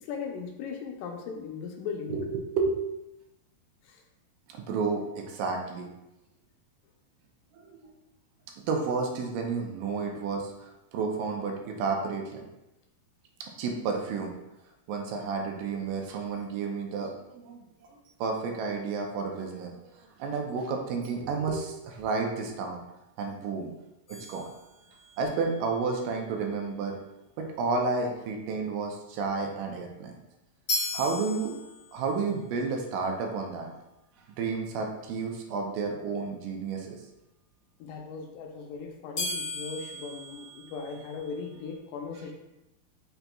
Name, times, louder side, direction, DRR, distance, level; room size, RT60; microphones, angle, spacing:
voice 1, 0.0-2.2 3.8-4.0 10.0-10.2 37.8-42.3, left 5 dB, 80° left, 2 dB, 2.1 m, -38 dB
voice 2, 2.1-2.8 4.5-5.9 7.5-7.9 8.7-12.4 13.4-14.3 14.9-17.6 18.2-22.8 23.2-23.7 24.1-24.5 25.2-27.0 27.4-30.1 30.9-31.6 31.9-33.7 34.4-37.0, right 4 dB, 80° right, 2 dB, 2.2 m, -31 dB
sound 1, 24.1-25.4 30.7-32.2 39.2-41.3, left 2 dB, 50° left, 1.3 m, -36 dB
5.8 x 3.9 x 2.3 m, 0.93 s
omnidirectional pair, 3.9 m